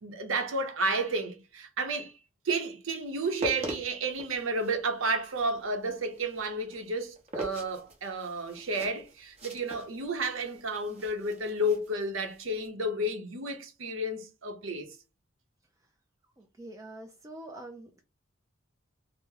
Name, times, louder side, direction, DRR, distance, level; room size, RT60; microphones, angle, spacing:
voice 1, 0.0-2.1 2.4-15.0 17.5-17.7, right 1 dB, 80° right, 0.7 m, -32 dB
sound 1, 3.1-12.7, equal, 30° right, 0.8 m, -43 dB
voice 2, 16.4-18.0, right 1 dB, 15° right, 0.4 m, -45 dB
3.0 x 2.0 x 3.6 m
head